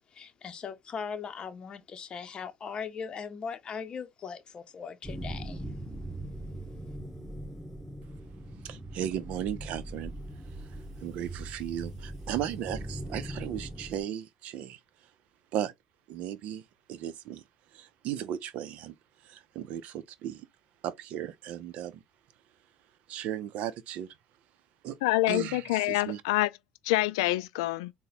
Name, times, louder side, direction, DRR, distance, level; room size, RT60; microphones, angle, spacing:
voice 1, 0.1-5.6, left 6 dB, 35° left, 0.7 m, -39 dB
sound 1, 5.0-14.0, right 1 dB, 10° right, 2.1 m, -40 dB
voice 2, 8.6-10.1 10.6-14.8 15.5-15.7 16.1-16.6 16.9-17.4 17.7-18.9 19.2-20.5 20.8-22.0 23.1-24.1 24.8-25.0 25.3-26.2, right 10 dB, 60° right, 0.6 m, -36 dB
voice 3, 25.0-26.5 26.9-27.9, left 18 dB, 90° left, 0.4 m, -26 dB
4.0 x 2.2 x 4.0 m
supercardioid pair, 100°, 3 cm